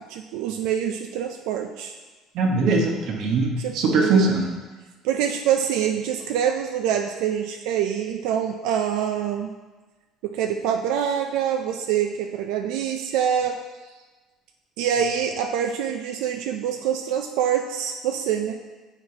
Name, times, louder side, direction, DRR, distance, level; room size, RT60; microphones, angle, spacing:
voice 1, 0.1-2.0 3.6-4.3 5.0-9.5 10.2-13.6 14.8-18.6, right 9 dB, 85° right, 4 dB, 0.3 m, -25 dB
voice 2, 2.3-4.5, right 3 dB, 60° right, 1 dB, 1.0 m, -21 dB
7.8 x 4.4 x 2.8 m, 1.3 s
cardioid pair, 140°, 0 cm